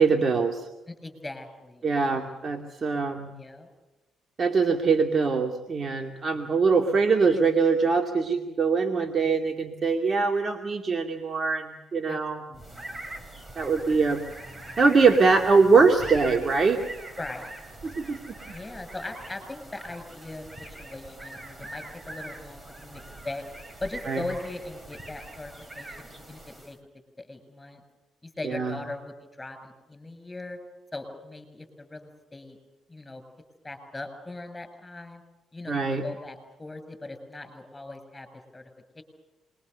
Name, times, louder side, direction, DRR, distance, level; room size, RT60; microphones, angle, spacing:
voice 1, 0.0-0.7 1.8-3.3 4.4-12.4 13.6-14.2 14.8-16.8 17.8-18.3 24.1-24.2 28.4-28.8 35.7-36.0, right 4 dB, 40° right, 3 dB, 2.4 m, -23 dB
voice 2, 0.9-2.4 3.3-3.7 6.3-6.5 12.1-13.1 17.2-17.6 18.5-23.4 23.8-26.8 27.2-27.8 28.2-30.6 30.9-32.6 32.9-33.2 33.6-35.2 35.5-38.7 39.0-39.1, left 2 dB, 15° left, 9 dB, 7.5 m, -40 dB
sound 1, 12.5-26.8, right 2 dB, 25° right, 3.9 m, -42 dB
27.5 x 23.0 x 6.9 m, 1.1 s
cardioid pair, 90°, 0 cm